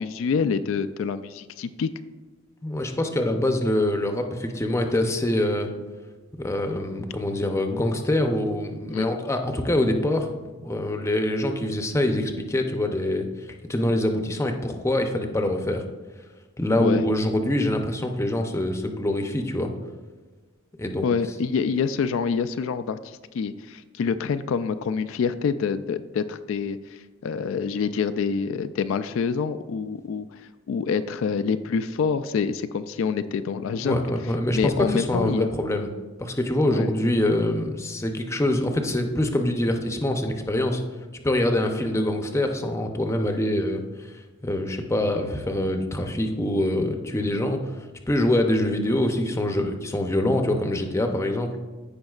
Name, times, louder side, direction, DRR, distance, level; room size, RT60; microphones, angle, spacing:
voice 1, 0.0-1.9 8.9-9.1 16.8-17.0 21.0-30.4 30.7-34.0 34.5-35.5 36.7-36.9 41.6-41.8, left 6 dB, 75° left, 11 dB, 0.3 m, -26 dB
voice 2, 2.6-5.7 6.4-13.3 13.7-15.8 16.6-19.7 20.8-21.1 33.7-35.9 36.2-40.8 41.2-43.8 44.4-47.6 48.1-51.5, left 1 dB, 15° left, 4 dB, 0.6 m, -24 dB
15.0 x 5.2 x 2.4 m, 1.3 s
head